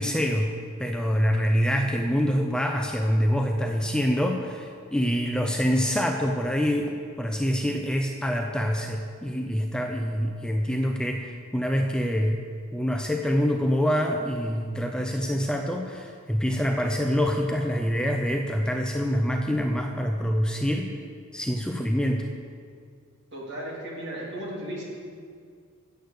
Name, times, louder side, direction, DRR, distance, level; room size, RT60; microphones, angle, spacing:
voice 1, 0.0-12.4 12.7-20.9 21.3-22.3, equal, 5° left, 2 dB, 0.5 m, -26 dB
voice 2, 23.3-24.8, right 1 dB, 55° right, -5 dB, 2.9 m, -35 dB
8.5 x 7.9 x 6.6 m, 2.1 s
head